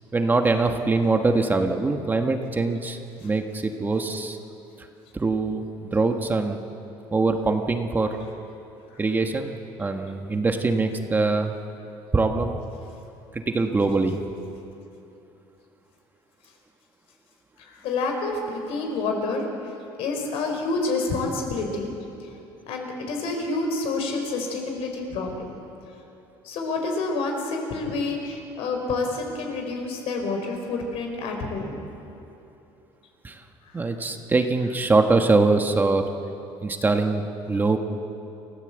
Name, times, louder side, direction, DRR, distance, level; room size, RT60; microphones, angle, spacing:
voice 1, 0.1-4.4 4.8-4.9 5.1-6.6 7.1-8.2 9.0-11.5 12.1-12.6 13.3-14.2 33.2-33.4 33.7-36.0 36.6-37.8, right 3 dB, 20° right, 4 dB, 1.3 m, -23 dB
voice 2, 17.6-19.4 20.0-21.9 22.7-25.5 26.4-31.7 33.7-33.9, left 3 dB, 70° left, 3 dB, 4.7 m, -28 dB
28.5 x 15.0 x 8.0 m, 2.9 s
cardioid pair, 135°, 10 cm